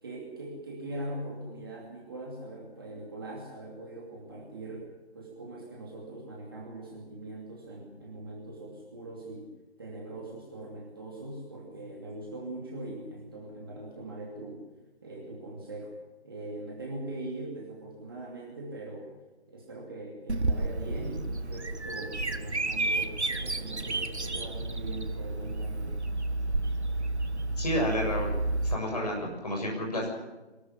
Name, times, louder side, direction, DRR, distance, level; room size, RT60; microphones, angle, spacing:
voice 1, 0.0-9.5 9.8-14.6 15.0-15.9 16.2-19.1 19.5-26.0 28.3-28.4, right 2 dB, 20° right, -2 dB, 2.6 m, -41 dB
Bird vocalization bird call bird song, 20.3-28.7, right 2 dB, 75° right, 1.5 m, -31 dB
voice 2, 27.6-28.3 28.7-30.1, equal, 35° left, 0 dB, 7.0 m, -30 dB
23.5 x 13.0 x 10.0 m, 1.1 s
figure-of-eight pair, 165°, 34 cm